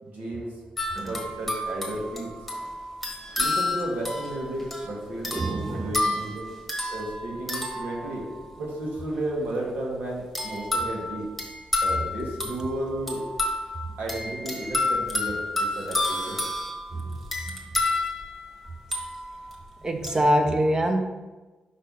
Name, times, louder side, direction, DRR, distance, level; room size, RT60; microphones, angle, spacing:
voice 1, 0.0-0.5 1.0-2.3 3.4-6.5 6.9-8.2 8.6-11.3 11.8-13.2 14.0-16.4, right 1 dB, 80° right, -3 dB, 1.9 m, -33 dB
sound 1, 0.8-8.6 10.3-19.5 20.0-20.3, left 2 dB, ahead, 1.4 m, -30 dB
voice 2, 5.3-5.9 17.0-17.2 19.8-21.0, equal, 25° right, 5 dB, 0.7 m, -24 dB
5.7 x 3.4 x 5.5 m, 1.2 s
cardioid pair, 95°, 3 cm